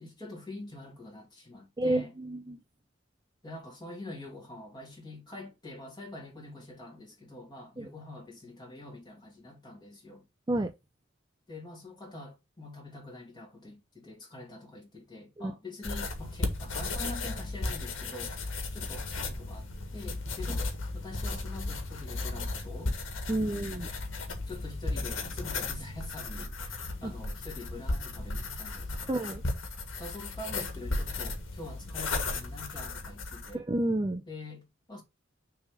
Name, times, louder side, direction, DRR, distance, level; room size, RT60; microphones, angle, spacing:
voice 1, 0.0-2.1 3.4-10.3 11.5-19.7 19.9-20.7 20.9-23.0 23.3-23.8 24.5-26.7 27.0-29.2 29.9-33.7 34.3-35.0, left 2 dB, 25° left, 2.8 m, -45 dB
voice 2, 1.8-2.6 7.8-7.9 10.5-10.7 15.4-15.5 20.5-20.6 23.3-23.9 27.0-27.1 29.1-29.4 33.5-34.2, right 1 dB, 20° right, 0.5 m, -30 dB
sound 1, 15.8-33.5, left 2 dB, 80° left, 1.7 m, -35 dB
6.5 x 3.5 x 6.1 m
head